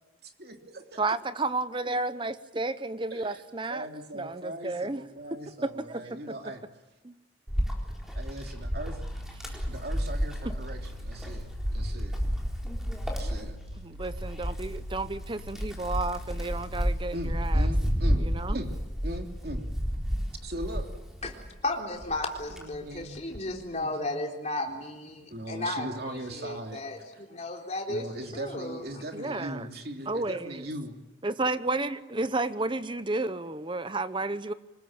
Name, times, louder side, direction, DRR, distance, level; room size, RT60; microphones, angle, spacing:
voice 1, 0.2-1.0 3.1-3.4 3.7-6.6 8.1-9.0 9.7-12.2 13.0-13.6 17.1-19.7 20.4-20.9 22.5-23.2 23.7-24.3 25.3-26.8 27.9-31.0, right 1 dB, 55° right, 4 dB, 3.0 m, -39 dB
voice 2, 1.0-3.9 4.1-5.0 5.6-6.2 7.0-7.1 10.5-10.6 13.8-17.7 18.2-18.6 29.1-29.7 30.1-30.5 31.2-34.5, right 2 dB, 25° right, 13 dB, 0.8 m, -32 dB
Wind, 7.5-21.6 22.0-23.5, equal, ahead, 4.0 m, -31 dB
sound 1, 8.6-18.6, left 1 dB, 70° left, 2.9 m, -55 dB
voice 3, 21.6-28.1 28.3-28.8, left 2 dB, 35° left, 1 dB, 3.8 m, -34 dB
25.5 x 21.0 x 8.9 m, 0.99 s
head